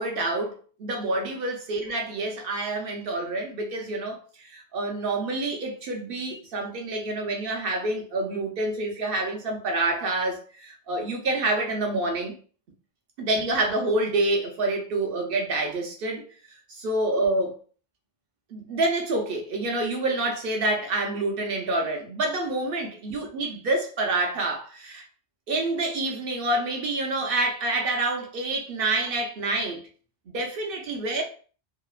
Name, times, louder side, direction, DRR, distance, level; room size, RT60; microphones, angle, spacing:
voice 1, 0.0-12.3 13.2-16.2 16.7-17.6 18.5-25.0 25.5-29.8 30.3-31.2, right 2 dB, 60° right, 0.7 m, -27 dB
2.8 x 2.0 x 2.3 m
omnidirectional pair, 1.1 m